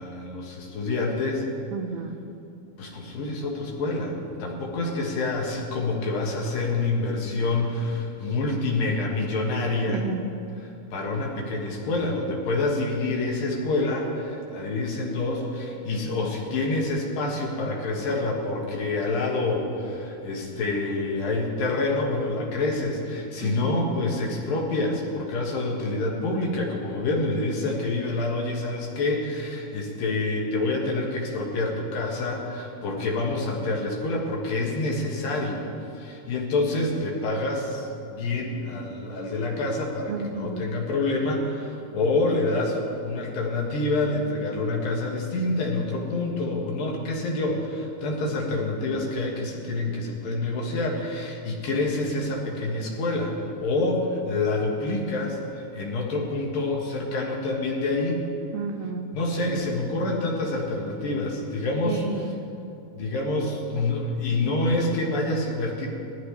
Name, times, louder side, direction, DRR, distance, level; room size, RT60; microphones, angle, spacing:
voice 1, 0.0-1.5 2.8-10.0 10.6-35.6 35.9-58.2 59.1-62.0 63.0-65.9, left 2 dB, 65° left, -1 dB, 3.1 m, -27 dB
voice 2, 1.7-2.2 9.9-10.2 23.4-24.0 40.1-40.7 58.5-59.1 61.9-62.4, right 5 dB, 80° right, 4 dB, 2.3 m, -32 dB
19.0 x 13.0 x 3.3 m, 2.7 s
omnidirectional pair, 4.6 m